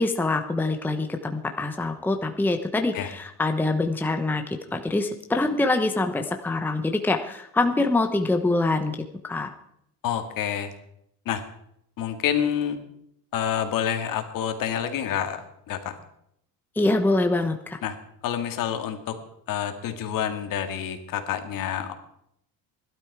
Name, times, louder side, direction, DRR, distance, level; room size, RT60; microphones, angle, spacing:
voice 1, 0.0-9.0 9.2-9.5 16.8-17.8, left 2 dB, 5° left, 5 dB, 0.9 m, -25 dB
voice 2, 10.0-10.7 11.3-11.4 12.0-12.8 13.3-15.4 15.7-16.0 17.8-18.0 18.2-19.2 19.5-21.9, left 9 dB, 55° left, 7 dB, 2.1 m, -28 dB
17.0 x 12.5 x 4.8 m, 0.74 s
cardioid pair, 140°, 39 cm